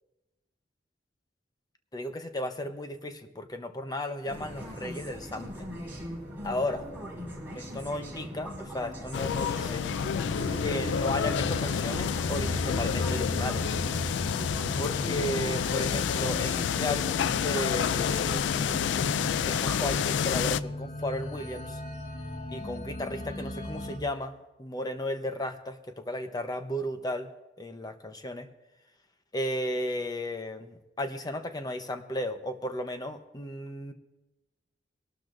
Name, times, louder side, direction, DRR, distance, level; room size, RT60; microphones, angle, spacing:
voice 1, 1.9-5.7 6.4-6.9 7.6-9.8 10.6-13.7 14.8-18.6 19.4-21.8 22.5-27.3 27.6-28.5 29.3-33.9, left 1 dB, 20° left, 7 dB, 0.9 m, -34 dB
sound 1, 4.3-20.0, equal, 10° right, 5.5 m, -40 dB
sound 2, 9.1-20.6, left 8 dB, 80° left, 0.3 m, -29 dB
sound 3, 10.2-24.0, left 1 dB, 45° left, 2.1 m, -37 dB
23.0 x 12.0 x 2.6 m, 1.0 s
head